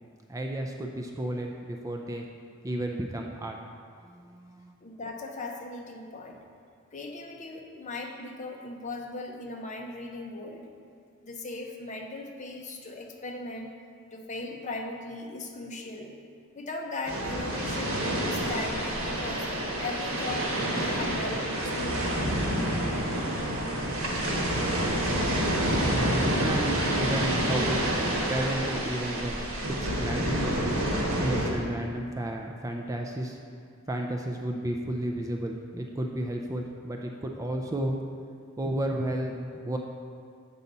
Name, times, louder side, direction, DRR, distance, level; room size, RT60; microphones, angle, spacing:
voice 1, 0.3-2.2 2.6-3.6 4.0-4.7 25.7-27.8 28.3-29.3 29.7-30.8 31.2-33.4 33.9-37.9 38.6-39.8, right 1 dB, 15° right, 2 dB, 0.4 m, -32 dB
voice 2, 4.8-6.4 6.9-10.7 11.2-13.7 14.1-16.1 16.5-19.5 19.8-22.3 24.2-24.5, left 2 dB, 35° left, 1 dB, 0.8 m, -38 dB
sound 1, 17.0-31.5, right 1 dB, 85° right, 1.3 m, -28 dB
8.3 x 5.5 x 4.0 m, 2.3 s
head